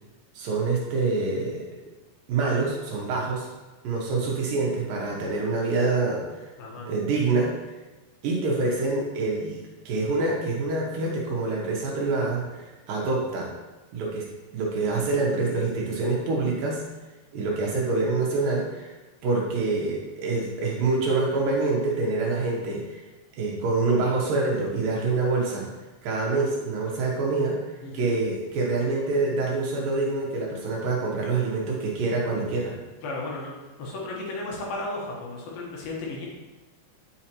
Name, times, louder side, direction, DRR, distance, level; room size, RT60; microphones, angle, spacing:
voice 1, 0.3-1.6 2.3-3.5 3.8-6.5 6.9-7.5 8.2-9.6 9.9-13.5 13.9-14.3 14.5-16.8 17.3-18.9 19.2-23.0 23.4-25.7 26.0-27.6 27.9-32.8, right 3 dB, 70° right, -2 dB, 2.4 m, -26 dB
voice 2, 33.0-33.5 33.8-36.3, left 2 dB, 70° left, -2 dB, 2.7 m, -34 dB
9.0 x 5.6 x 2.9 m, 1.2 s
omnidirectional pair, 4.6 m